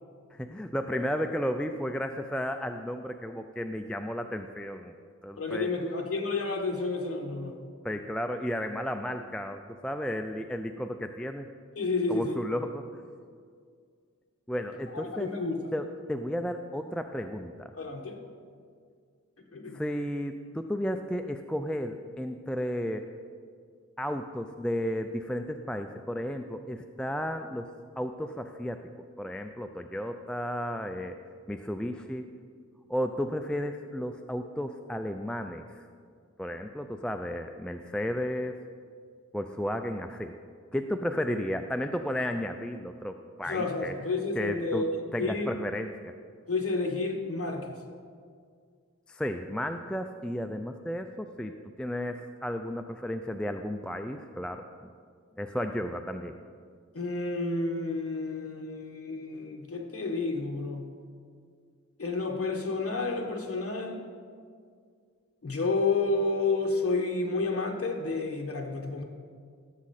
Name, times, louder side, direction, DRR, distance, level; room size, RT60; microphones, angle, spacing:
voice 1, 0.3-4.9 5.2-5.9 7.8-11.5 12.1-13.0 14.5-15.3 15.7-17.7 19.7-23.1 24.0-27.7 28.0-28.9 29.2-31.2 31.5-32.3 32.9-35.9 36.4-38.6 39.3-40.3 40.7-44.9 45.1-46.1 49.1-54.9 55.4-56.4, equal, 5° left, 6 dB, 0.4 m, -33 dB
voice 2, 5.4-7.5 11.8-12.4 14.9-15.7 17.7-18.2 19.5-19.8 43.5-44.9 45.2-45.5 46.5-47.7 56.9-60.9 62.0-64.0 65.4-69.0, left 3 dB, 50° left, 1 dB, 1.2 m, -30 dB
16.5 x 7.3 x 4.2 m, 2.1 s
wide cardioid pair, 65°, 29 cm